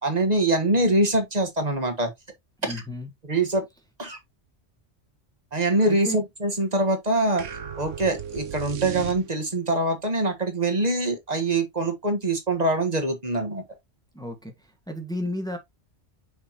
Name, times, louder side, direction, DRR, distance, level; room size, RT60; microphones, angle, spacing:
voice 1, 0.0-2.1 2.6-2.8 3.3-3.6 4.0-4.2 5.5-7.4 7.8-13.6, right 2 dB, 35° right, 1.5 m, -24 dB
voice 2, 2.6-3.1 5.8-6.2 14.1-15.6, left 1 dB, 5° left, 1.5 m, -33 dB
sound 1, 7.4-9.7, right 8 dB, 85° right, 1.3 m, -35 dB
6.3 x 5.3 x 2.9 m
omnidirectional pair, 1.2 m